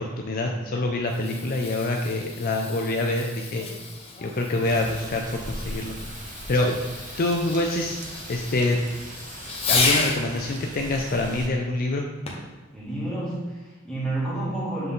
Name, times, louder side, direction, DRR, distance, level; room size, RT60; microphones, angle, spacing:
voice 1, 0.0-3.7 4.2-6.0 6.5-6.8 7.2-8.0 8.3-8.8 9.7-12.1, left 2 dB, 45° left, 2 dB, 0.5 m, -26 dB
Fireworks, 0.9-10.2 12.3-12.6 13.3-13.4, left 3 dB, 30° left, 1.0 m, -32 dB
sound 1, 4.6-11.5, right 2 dB, 40° right, 0.7 m, -40 dB
voice 2, 12.7-14.9, right 2 dB, 5° left, -9 dB, 2.2 m, -30 dB
7.7 x 3.9 x 3.7 m, 1.2 s
head